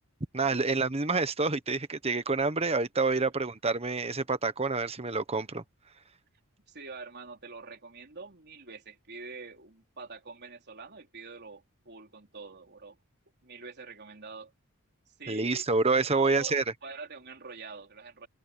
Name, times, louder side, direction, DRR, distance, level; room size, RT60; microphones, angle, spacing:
voice 1, 0.3-5.6 15.3-16.6, right 3 dB, 30° right, 1.2 m, -28 dB
voice 2, 6.7-13.0 13.4-14.5 15.1-15.6 16.0-18.3, right 4 dB, 50° right, 4.3 m, -45 dB
open air
head